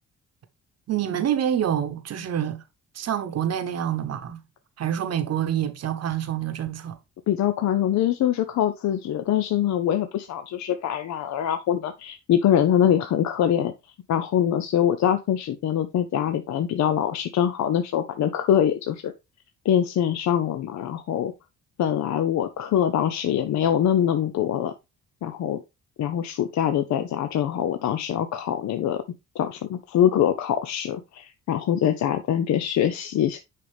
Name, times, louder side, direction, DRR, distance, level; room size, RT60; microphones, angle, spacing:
voice 1, 0.9-2.6 2.9-4.4 4.8-7.0, right 10 dB, 55° right, 1.0 m, -27 dB
voice 2, 7.3-13.7 14.1-19.1 19.6-21.3 21.8-24.7 25.2-25.6 26.0-29.0 29.4-33.4, left 10 dB, 65° left, 0.7 m, -23 dB
6.6 x 5.2 x 3.4 m
cardioid pair, 90°, 30 cm